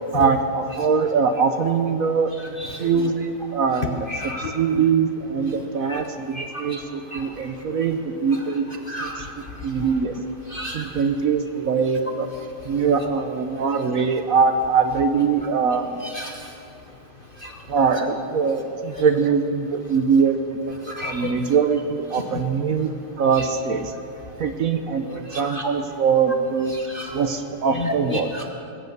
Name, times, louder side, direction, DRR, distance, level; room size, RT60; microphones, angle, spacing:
voice 1, 0.1-8.7 9.0-9.3 9.6-10.1 10.7-12.3 12.6-16.0 17.7-20.4 20.7-22.9 23.2-23.9 24.4-26.7 27.1-28.3, right 5 dB, 60° right, 7 dB, 1.0 m, -22 dB
voice 2, 2.6-3.1 4.1-4.8 5.9-6.0 6.3-6.8 7.1-7.2 8.9-9.3 9.8-9.9 10.5-10.8 16.0-16.3 17.4-17.5 19.0-19.1 20.9-21.3 22.1-22.4 25.3-25.7 26.7-27.2 27.7-28.5, left 2 dB, 45° left, 3 dB, 0.7 m, -31 dB
20.5 x 8.7 x 6.6 m, 2.7 s
omnidirectional pair, 1.8 m